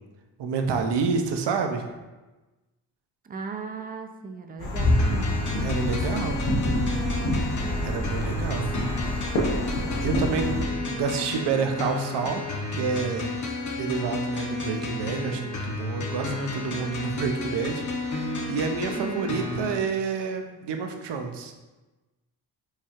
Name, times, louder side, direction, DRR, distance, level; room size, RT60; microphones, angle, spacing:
voice 1, 0.4-1.8 5.6-6.4 7.8-8.7 10.0-10.6 10.8-12.4 12.7-13.4 13.8-21.5, right 5 dB, 60° right, 5 dB, 0.6 m, -28 dB
voice 2, 3.2-5.3 7.6-8.1 19.0-19.4, right 4 dB, 20° right, 5 dB, 0.3 m, -37 dB
sound 1, 4.6-10.6, left 1 dB, 75° left, 0.9 m, -26 dB
sound 2, 4.8-19.8, left 3 dB, 40° left, 0.8 m, -32 dB
4.7 x 2.3 x 2.9 m, 1.1 s
cardioid pair, 70°, 48 cm